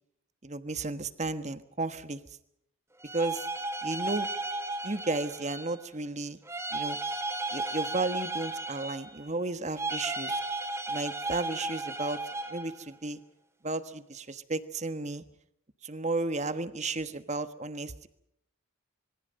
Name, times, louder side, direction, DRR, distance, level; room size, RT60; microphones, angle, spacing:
voice 1, 0.4-2.2 3.1-3.5 3.8-4.3 4.8-6.4 6.7-7.0 7.5-10.4 10.9-12.2 12.5-13.2 13.6-15.2 15.8-18.1, right 2 dB, 35° right, 11 dB, 1.4 m, -33 dB
sound 1, 3.0-5.8 6.5-9.3 9.7-12.7, right 2 dB, 15° right, 3.5 m, -34 dB
26.5 x 23.5 x 5.4 m, 0.75 s
head